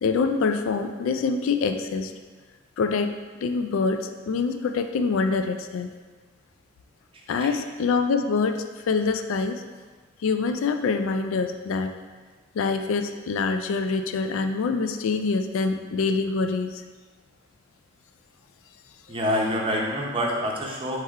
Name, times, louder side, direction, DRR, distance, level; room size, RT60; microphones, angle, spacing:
voice 1, 0.0-2.1 2.8-3.1 3.4-5.9 7.3-8.6 8.9-9.6 10.2-11.9 12.5-16.8, left 4 dB, 85° left, 7 dB, 0.3 m, -25 dB
voice 2, 19.1-21.0, equal, 25° right, -1 dB, 0.6 m, -26 dB
3.6 x 3.2 x 4.3 m, 1.4 s
head